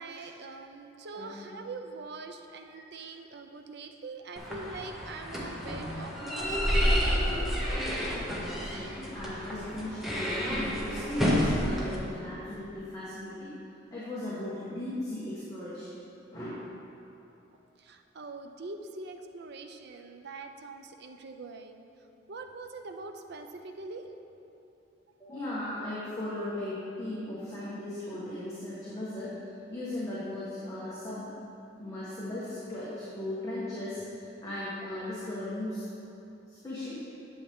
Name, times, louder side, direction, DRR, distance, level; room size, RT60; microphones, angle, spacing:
voice 1, 0.0-7.2 17.8-21.8 22.3-24.0, right 3 dB, 60° right, 6 dB, 0.6 m, -43 dB
voice 2, 1.1-1.5 2.7-2.8 8.3-13.5 13.9-16.0 16.3-16.6 25.2-29.3 29.7-31.3 31.8-34.0 34.4-35.8 36.6-36.9, left 1 dB, 20° left, -10 dB, 1.4 m, -37 dB
sound 1, 4.4-12.0, equal, ahead, 1.3 m, -30 dB
11.0 x 7.2 x 3.6 m, 2.9 s
head